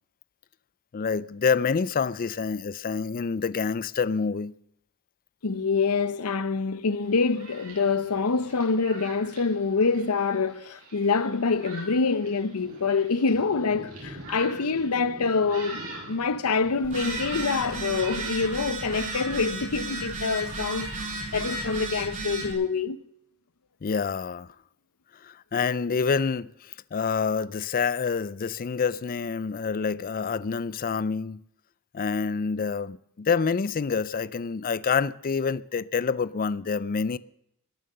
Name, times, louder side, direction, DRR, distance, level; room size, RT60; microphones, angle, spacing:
voice 1, 0.9-4.5 23.8-24.5 25.2-31.4 31.9-37.2, left 5 dB, 40° left, 0.4 m, -27 dB
voice 2, 5.4-20.9 21.3-23.0, left 4 dB, 85° left, 0.8 m, -26 dB
Thunderstorm, 7.0-21.8, right 2 dB, 75° right, 7.7 m, -42 dB
Telephone, 16.8-22.5, right 2 dB, 40° right, 4.8 m, -34 dB
20.5 x 7.5 x 6.7 m
head